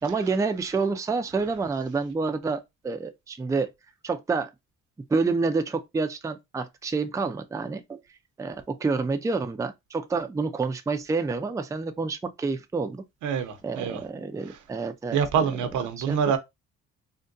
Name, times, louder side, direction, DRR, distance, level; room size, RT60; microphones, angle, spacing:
voice 1, 0.0-3.7 4.0-4.5 5.1-8.0 8.4-13.0 13.6-15.5 16.0-16.4, right 4 dB, 10° right, 0.4 m, -28 dB
voice 2, 13.2-14.0 15.1-16.4, right 7 dB, 80° right, 0.7 m, -25 dB
3.7 x 2.2 x 2.5 m
cardioid pair, 90°, 30 cm